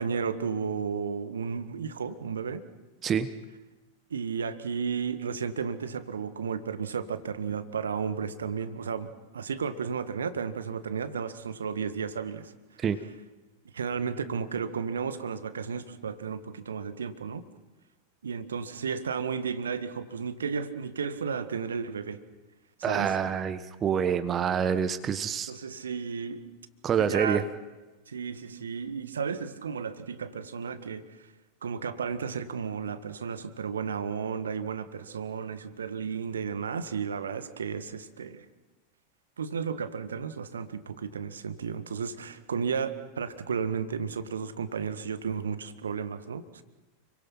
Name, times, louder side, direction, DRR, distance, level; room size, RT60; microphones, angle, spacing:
voice 1, 0.0-2.6 4.1-9.1 9.3-12.5 13.7-17.4 18.2-22.2 22.8-23.1 25.5-26.4 27.0-27.4 28.1-31.0 31.6-38.4 39.4-46.6, right 6 dB, 70° right, 11 dB, 1.7 m, -33 dB
voice 2, 22.8-25.5 26.8-27.4, right 7 dB, 25° right, 11 dB, 1.3 m, -26 dB
29.5 x 23.5 x 5.9 m, 1.2 s
figure-of-eight pair, 90°, 0 cm